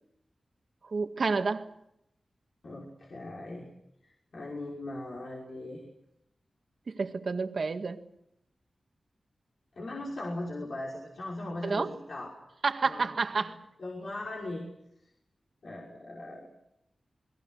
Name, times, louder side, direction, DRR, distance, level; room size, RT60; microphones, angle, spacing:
voice 1, 0.8-1.7 6.9-8.0 11.6-11.9 12.6-13.6, right 4 dB, 65° right, 1.9 m, -29 dB
voice 2, 2.6-3.7 4.0-5.8 9.8-12.4 12.8-13.1 13.4-13.5 13.8-14.7 15.6-16.5, left 2 dB, 70° left, 5.8 m, -39 dB
28.5 x 22.0 x 6.6 m
cardioid pair, 55°, 0 cm